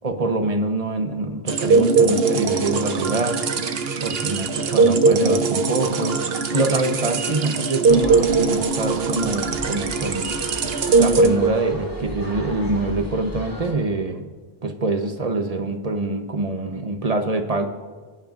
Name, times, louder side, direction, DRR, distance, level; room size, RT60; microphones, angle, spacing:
voice 1, 0.0-3.4 4.0-6.2 6.5-10.4 11.0-14.3 14.6-17.7, right 2 dB, 40° right, 6 dB, 1.0 m, -25 dB
sound 1, 1.5-12.0, right 4 dB, 70° right, 1.1 m, -20 dB
sound 2, 7.9-13.7, equal, 20° right, 3.1 m, -35 dB
30.0 x 10.0 x 2.5 m, 1.5 s
omnidirectional pair, 1.1 m